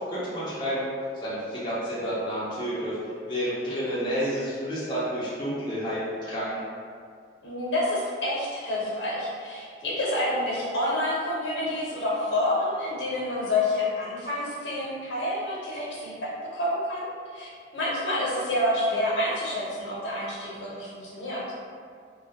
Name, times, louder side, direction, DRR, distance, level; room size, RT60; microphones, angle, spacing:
voice 1, 0.1-0.9 1.2-2.9 3.3-6.6, equal, 25° left, -9 dB, 0.4 m, -30 dB
voice 2, 7.4-16.1 16.5-21.4, left 1 dB, 80° left, -6 dB, 0.7 m, -28 dB
2.2 x 2.1 x 2.7 m, 2.1 s
head